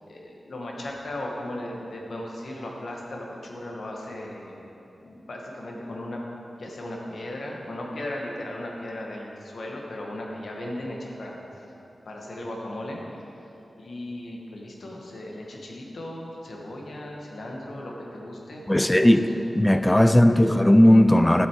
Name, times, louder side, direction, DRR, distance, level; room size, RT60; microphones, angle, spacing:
voice 1, 0.1-4.6 5.0-6.2 6.6-11.4 12.0-13.0 13.8-19.4 20.2-20.7, left 1 dB, 70° left, -1 dB, 1.7 m, -36 dB
voice 2, 18.7-19.3 19.6-21.5, left 1 dB, 15° left, 10 dB, 0.4 m, -17 dB
11.5 x 8.3 x 4.7 m, 3.0 s
wide cardioid pair, 80°, 0 cm